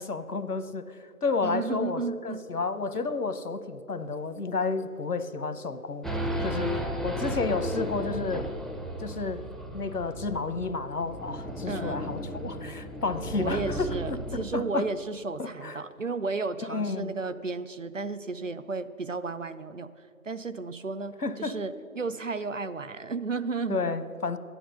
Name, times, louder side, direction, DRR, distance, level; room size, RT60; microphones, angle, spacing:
voice 1, 0.0-8.4 9.0-9.4 9.7-14.9 15.4-15.8 16.7-17.1 21.2-21.6 23.7-24.4, left 4 dB, 85° left, 12 dB, 1.0 m, -31 dB
voice 2, 1.4-2.4 11.7-12.2 13.4-19.9 20.2-24.0, right 4 dB, 60° right, 13 dB, 0.6 m, -33 dB
Race car auto racing / Idling / Accelerating revving vroom, 6.0-14.6, equal, ahead, 0.5 m, -34 dB
12.5 x 10.0 x 6.2 m, 2.4 s
figure-of-eight pair, 165°, 45 cm